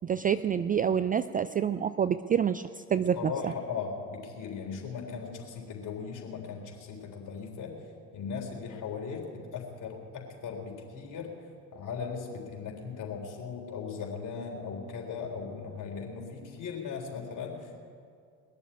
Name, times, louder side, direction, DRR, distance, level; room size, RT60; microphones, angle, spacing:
voice 1, 0.0-3.5, right 8 dB, 20° right, 13 dB, 0.4 m, -27 dB
voice 2, 3.2-7.8 8.1-11.3 11.7-17.8, left 5 dB, 50° left, 1 dB, 3.8 m, -38 dB
21.0 x 7.0 x 9.8 m, 2.2 s
hypercardioid pair, 65°, 41 cm